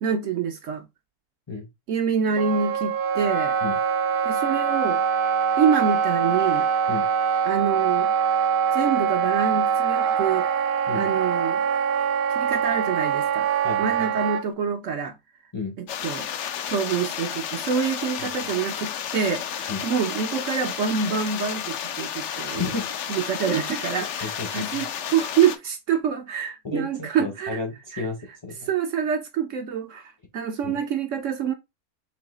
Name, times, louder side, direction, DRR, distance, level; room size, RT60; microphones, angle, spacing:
voice 1, 0.0-0.9 1.9-3.6 4.2-5.0 5.6-6.7 7.4-8.1 8.7-10.5 10.9-11.6 12.3-13.5 13.8-15.1 15.8-16.3 16.7-22.6 23.1-27.6 27.9-28.1 28.7-31.5, right 7 dB, 65° right, 0.9 m, -26 dB
Wind instrument woodwind instrument, 2.4-14.4, right 7 dB, 80° right, 1.1 m, -23 dB
sound 1, 15.9-25.6, left 9 dB, 70° left, 0.7 m, -32 dB
voice 2, 22.3-23.0 24.2-24.9 26.6-28.7 30.6-30.8, left 3 dB, 25° left, 0.6 m, -32 dB
3.9 x 2.7 x 3.8 m
omnidirectional pair, 1.6 m